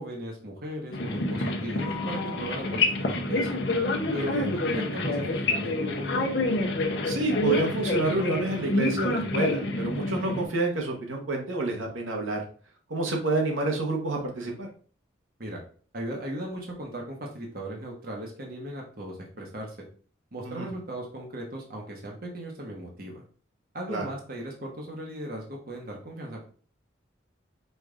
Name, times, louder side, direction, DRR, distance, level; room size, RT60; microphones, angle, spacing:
voice 1, 0.0-3.6 4.1-6.3 15.4-15.6 15.9-19.8 20.3-23.2 23.7-26.5, equal, 50° right, 0 dB, 1.0 m, -37 dB
sound 1, 0.9-10.4, left 2 dB, 60° left, 0.7 m, -28 dB
voice 2, 4.2-4.5 7.0-12.4 12.9-14.7 20.4-20.7 23.9-24.1, right 2 dB, 90° right, 1 dB, 1.1 m, -28 dB
5.1 x 2.5 x 3.7 m, 0.42 s
head